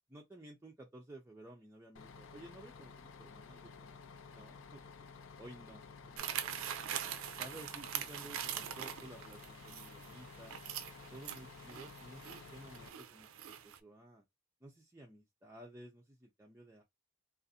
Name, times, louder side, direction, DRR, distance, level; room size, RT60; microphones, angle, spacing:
voice 1, 0.1-4.8 5.4-6.9 7.4-10.6 11.1-14.2 14.6-16.8, right 1 dB, 10° right, 0.4 m, -54 dB
Bus, 1.9-12.9, left 5 dB, 70° left, 0.4 m, -53 dB
sound 1, 6.2-13.8, right 10 dB, 85° right, 0.4 m, -43 dB
2.5 x 2.4 x 2.6 m
head